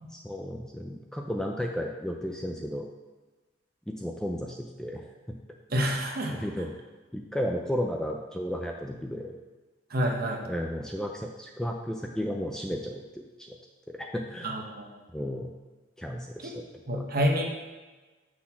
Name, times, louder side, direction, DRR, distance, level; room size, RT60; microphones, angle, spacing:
voice 1, 0.1-2.9 3.9-5.4 6.3-6.7 7.1-9.3 10.4-13.6 14.0-14.5 15.1-15.5 16.0-16.6 16.9-17.0, equal, 5° left, 1 dB, 0.3 m, -33 dB
voice 2, 5.7-6.4 9.9-10.5 14.4-14.9 16.4-16.5 16.9-17.5, equal, 50° right, 1 dB, 1.0 m, -28 dB
6.2 x 3.9 x 5.8 m, 1.2 s
head